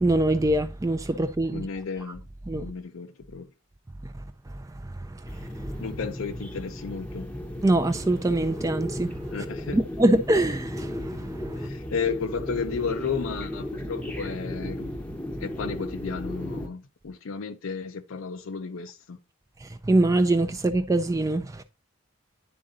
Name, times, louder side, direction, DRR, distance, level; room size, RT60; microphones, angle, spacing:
voice 1, 0.0-1.7 2.5-2.7 4.5-5.7 7.6-9.2 9.7-11.7 19.6-21.6, right 1 dB, 15° right, 0.3 m, -24 dB
voice 2, 1.5-2.2 2.5-3.5 5.8-7.3 9.3-9.8 11.5-14.9 15.4-19.2, left 5 dB, 75° left, 0.5 m, -33 dB
sound 1, 5.3-16.7, left 1 dB, 5° left, 0.7 m, -35 dB
10.0 x 3.7 x 3.9 m
head